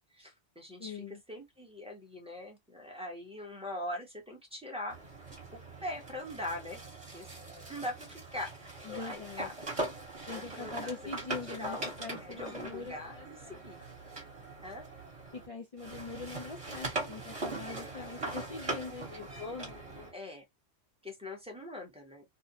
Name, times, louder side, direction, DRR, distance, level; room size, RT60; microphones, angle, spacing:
voice 1, 0.1-5.0 5.3-6.8 7.1-7.4 7.7-9.5 10.3-11.9 12.2-13.8 14.6-14.8 17.7-18.4 20.1-20.4 21.0-22.2, left 1 dB, 5° right, 0.8 m, -42 dB
voice 2, 0.8-1.2 8.8-9.5 10.3-13.6 15.3-20.1, left 4 dB, 55° left, 0.4 m, -43 dB
sound 1, 4.9-15.5 15.8-20.1, right 2 dB, 30° right, 1.1 m, -41 dB
2.6 x 2.1 x 2.7 m
omnidirectional pair, 1.1 m